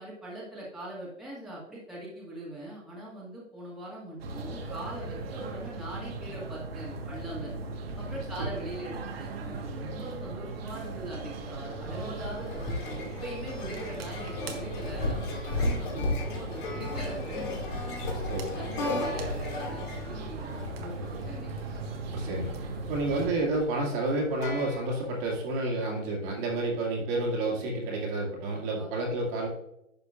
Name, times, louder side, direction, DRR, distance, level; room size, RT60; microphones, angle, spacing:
voice 1, 0.0-7.5 8.0-17.6 18.0-18.1 18.5-21.5 28.7-28.9, right 1 dB, ahead, -8 dB, 1.9 m, -41 dB
sound 1, 4.2-23.3, right 2 dB, 50° right, 1.5 m, -38 dB
sound 2, 11.4-25.3, left 2 dB, 40° left, 2.3 m, -35 dB
voice 2, 22.1-22.5 22.9-29.5, right 2 dB, 30° right, -2 dB, 2.1 m, -30 dB
11.0 x 6.5 x 2.5 m, 0.82 s
figure-of-eight pair, 125°, 38 cm